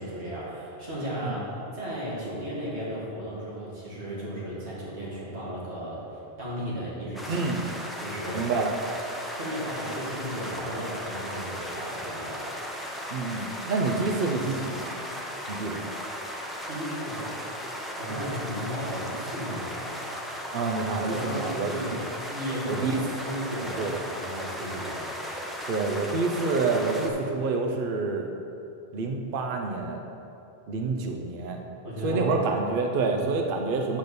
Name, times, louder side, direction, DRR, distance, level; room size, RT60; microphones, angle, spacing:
voice 1, 0.0-7.5 8.0-8.5 9.4-12.5 16.7-17.4 17.9-19.9 21.0-22.9 23.2-25.0 31.8-32.4 33.1-33.2, equal, 85° right, -7 dB, 2.3 m, -34 dB
sound 1, 7.2-27.1, equal, ahead, 0.5 m, -36 dB
voice 2, 7.3-7.6 8.3-8.7 13.1-14.9 15.5-15.8 18.1-18.2 20.5-21.7 22.7-23.0 23.8-24.0 25.7-28.3 28.9-30.0 30.7-31.6 32.0-34.0, right 4 dB, 60° right, 3 dB, 0.8 m, -28 dB
8.4 x 4.1 x 6.6 m, 2.8 s
omnidirectional pair, 1.1 m